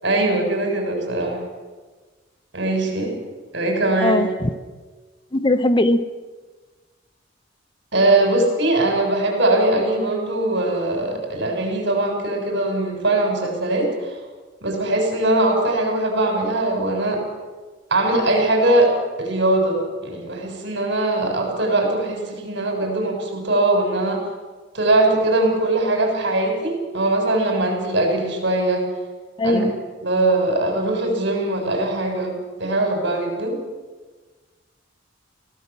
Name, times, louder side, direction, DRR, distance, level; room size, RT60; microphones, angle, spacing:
voice 1, 0.0-1.4 2.5-3.1 3.5-4.2 7.9-14.2 14.6-17.2 17.9-18.9 19.2-24.2 24.7-28.8 29.4-29.6 30.0-32.3 32.6-33.5, right 2 dB, 65° right, 3 dB, 6.8 m, -21 dB
voice 2, 4.0-4.5 5.3-6.0 29.4-29.8, left 1 dB, 25° left, 11 dB, 0.9 m, -19 dB
25.0 x 17.5 x 7.5 m, 1.3 s
head